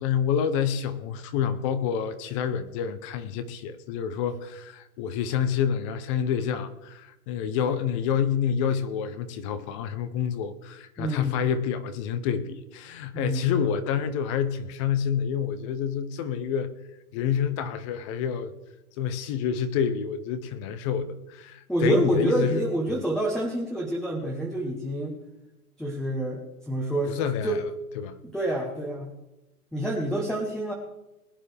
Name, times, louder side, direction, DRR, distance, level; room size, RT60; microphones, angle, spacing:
voice 1, 0.0-16.7 17.1-18.5 19.0-22.6 27.1-27.7 28.0-28.2, left 8 dB, 20° left, 0.6 m, -28 dB
voice 2, 11.0-11.4 13.1-13.5 21.7-25.2 25.8-27.2 27.4-27.6 28.2-29.1 29.7-30.7, right 1 dB, ahead, 1.0 m, -27 dB
21.5 x 9.8 x 3.4 m
hypercardioid pair, 150°, 45 cm